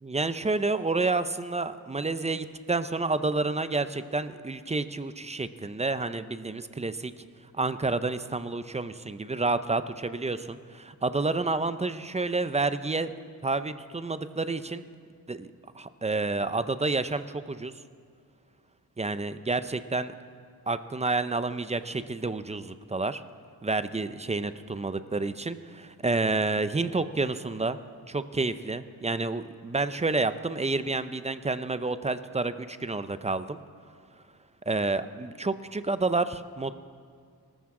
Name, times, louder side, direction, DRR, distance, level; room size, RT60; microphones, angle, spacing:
voice 1, 0.0-7.1 7.6-13.1 13.4-14.8 15.3-15.5 15.7-17.7 19.0-20.1 20.7-23.2 23.6-27.8 28.1-33.6 34.7-36.7, right 3 dB, 15° right, 12 dB, 0.5 m, -29 dB
24.0 x 13.5 x 3.7 m, 2.1 s
wide cardioid pair, 115°, 39 cm